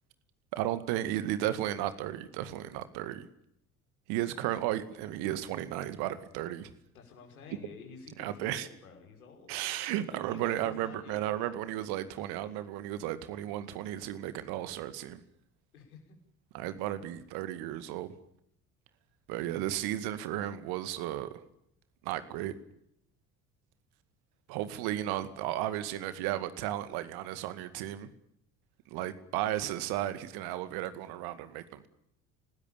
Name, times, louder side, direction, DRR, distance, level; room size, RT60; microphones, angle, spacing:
voice 1, 0.5-3.3 4.1-6.7 8.2-8.7 9.5-15.2 16.5-18.1 19.3-21.4 22.0-22.5 24.5-28.1 28.9-31.9, right 13 dB, 60° right, 12 dB, 2.2 m, -34 dB
voice 2, 6.9-9.6 10.0-12.7 15.7-16.2, left 5 dB, 75° left, 3 dB, 5.6 m, -51 dB
28.5 x 19.5 x 7.2 m, 0.74 s
figure-of-eight pair, 55°, 43 cm